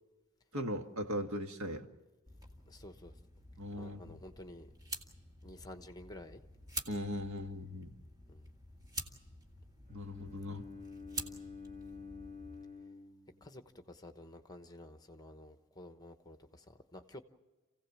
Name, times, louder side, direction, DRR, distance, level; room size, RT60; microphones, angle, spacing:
voice 1, 0.5-1.9 3.6-4.2 6.9-7.9 9.9-10.6, equal, 70° right, 5 dB, 1.8 m, -39 dB
sound 1, 2.3-12.6, right 1 dB, 15° right, 1.8 m, -48 dB
voice 2, 2.7-3.1 3.7-4.7 5.4-6.4 8.3-8.5 13.4-17.2, left 1 dB, 15° left, 7 dB, 1.1 m, -51 dB
Bowed string instrument, 9.9-14.0, left 4 dB, 35° right, 2.0 m, -50 dB
28.5 x 16.5 x 7.4 m, 1.2 s
head